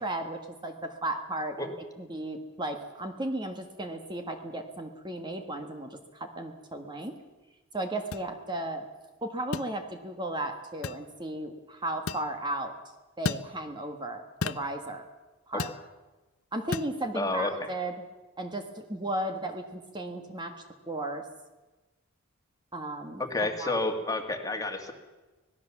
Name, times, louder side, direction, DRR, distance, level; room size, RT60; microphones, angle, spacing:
voice 1, 0.0-7.2 7.7-8.8 9.2-12.7 13.2-15.0 15.5-15.7 16.5-17.9 18.4-20.5 20.9-21.2 22.7-23.9, right 1 dB, 20° right, 5 dB, 1.6 m, -35 dB
sound 1, 8.1-8.3 9.5-9.7 10.8-11.0 12.1-12.3 13.2-13.5 14.4-14.7 15.6-15.8 16.7-16.9, left 4 dB, 70° left, 0.7 m, -32 dB
voice 2, 17.2-17.7 23.2-24.9, left 2 dB, 15° left, 5 dB, 2.1 m, -30 dB
25.5 x 18.5 x 7.2 m, 1.2 s
head